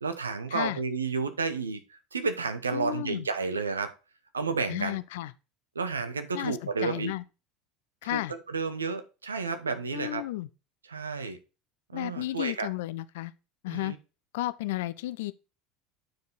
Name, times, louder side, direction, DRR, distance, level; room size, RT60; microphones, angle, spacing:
voice 1, 0.0-3.9 4.3-5.0 5.7-7.1 8.1-10.2 10.9-11.4 11.9-12.7 13.7-14.0, right 4 dB, 80° right, 1.0 m, -31 dB
voice 2, 2.7-3.3 4.7-5.3 6.3-7.2 8.0-8.3 9.9-10.5 11.9-13.3 13.6-13.9 14.3-15.3, left 17 dB, 60° left, 0.5 m, -33 dB
9.6 x 4.7 x 4.0 m
figure-of-eight pair, 70°, 0 cm